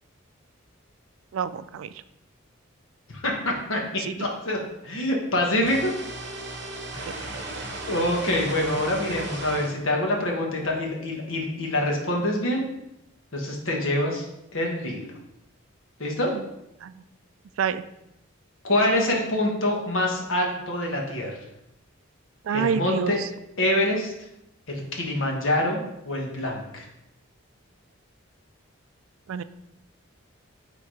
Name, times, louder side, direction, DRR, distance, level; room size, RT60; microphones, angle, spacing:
voice 1, 1.3-1.9 4.1-4.2 16.3-16.4 16.8-16.9 17.6-17.8 22.5-23.1 29.3-29.4, right 7 dB, 80° right, 13 dB, 0.3 m, -27 dB
voice 2, 3.1-5.9 7.8-12.6 13.3-14.3 14.5-15.1 16.0-16.3 18.6-21.4 22.5-23.2 23.6-24.1 24.7-26.8, left 1 dB, 75° left, 0 dB, 1.4 m, -25 dB
sound 1, 5.6-9.8, right 2 dB, 55° right, 1.0 m, -35 dB
6.2 x 3.8 x 4.8 m, 0.84 s
head